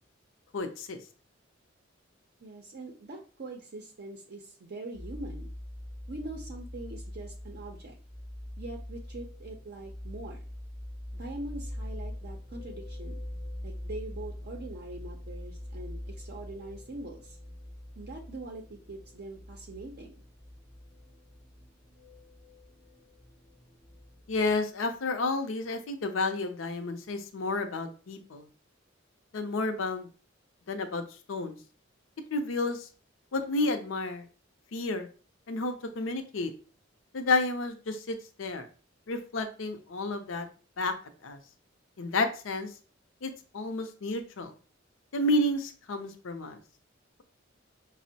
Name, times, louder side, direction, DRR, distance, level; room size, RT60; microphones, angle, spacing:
voice 1, 0.5-1.0 24.3-28.5 29.3-30.1 30.7-31.0 31.3-31.6 32.3-32.9 33.3-34.3 34.7-35.1 35.5-36.5 37.1-38.7 39.1-40.5 40.8-40.9 41.2-41.4 42.0-42.7 43.2-44.5 45.1-46.6, left 2 dB, 80° left, 7 dB, 0.5 m, -31 dB
voice 2, 2.4-5.5 6.1-8.0 8.6-10.4 11.1-13.2 13.6-17.4 18.0-20.2, right 2 dB, 50° right, 2 dB, 0.5 m, -43 dB
sound 1, 4.9-24.5, left 1 dB, ahead, 0.4 m, -43 dB
5.0 x 2.0 x 2.7 m, 0.38 s
head